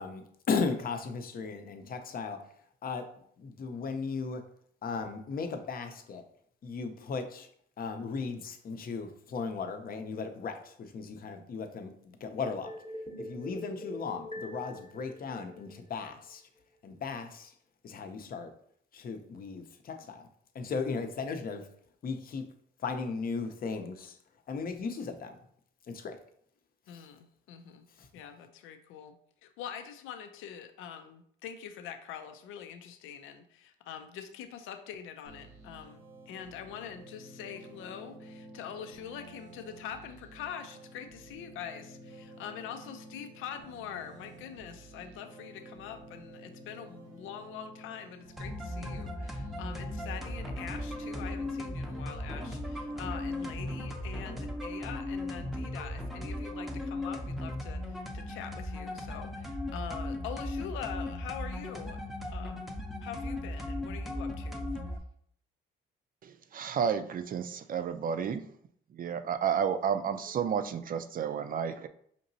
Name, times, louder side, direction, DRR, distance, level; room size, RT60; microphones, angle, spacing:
voice 1, 0.0-2.5 2.8-3.1 3.4-4.4 4.8-6.2 6.6-7.5 7.8-12.8 13.2-16.4 16.8-17.5 17.8-18.5 18.9-20.3 20.5-21.7 22.0-22.5 22.8-24.2 24.5-25.4 25.9-26.2 26.9-27.1 28.0-28.1, left 4 dB, 45° left, 7 dB, 0.6 m, -36 dB
sound 1, 12.6-16.0, equal, 25° left, 0.9 m, -44 dB
voice 2, 26.9-27.9 28.1-29.2 29.4-62.0 62.2-62.7 63.0-64.7, left 8 dB, 90° left, 8 dB, 0.4 m, -44 dB
sound 2, 35.2-53.9, right 1 dB, 85° right, 1.2 m, -51 dB
sound 3, 48.4-65.0, left 1 dB, ahead, 0.6 m, -37 dB
voice 3, 66.2-68.5 68.9-71.9, right 7 dB, 45° right, 10 dB, 0.4 m, -31 dB
5.1 x 2.9 x 2.7 m, 0.65 s
cardioid pair, 90°, 20 cm